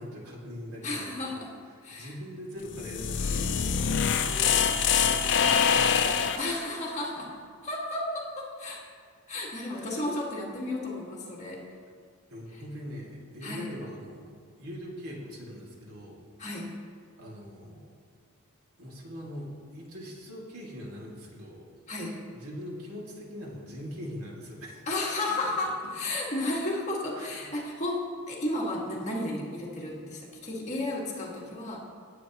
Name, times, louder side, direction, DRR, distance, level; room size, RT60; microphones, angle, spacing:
voice 1, 0.0-1.4 1.9-6.7 9.7-9.9 12.3-16.2 17.2-17.9 18.8-21.7 22.3-25.1 27.2-27.5, equal, 80° right, -3 dB, 2.3 m, -42 dB
voice 2, 0.8-1.5 1.8-2.1 6.4-7.3 7.6-8.8 9.3-11.6 12.5-12.6 13.4-13.7 16.4-16.7 21.9-22.2 24.9-31.8, left 2 dB, 35° left, -4 dB, 1.9 m, -33 dB
sound 1, 2.7-6.5, left 7 dB, 55° left, 0.6 m, -25 dB
18.0 x 8.3 x 3.0 m, 2.1 s
head